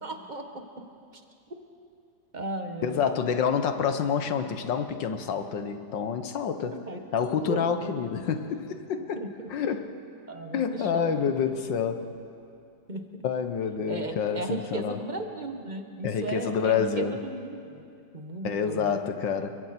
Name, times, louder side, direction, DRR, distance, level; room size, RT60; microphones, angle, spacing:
voice 1, 0.0-0.6 1.1-1.2 2.3-3.0 6.9-7.0 7.4-8.0 9.2-9.5 10.3-11.2 12.9-13.0 13.9-17.8 18.1-19.0, right 2 dB, 25° right, 5 dB, 1.4 m, -35 dB
voice 2, 2.8-6.8 7.1-10.0 10.5-12.1 13.2-15.0 16.0-17.2 18.4-19.6, left 7 dB, 90° left, 8 dB, 1.8 m, -28 dB
29.5 x 22.5 x 4.4 m, 2.5 s
omnidirectional pair, 1.9 m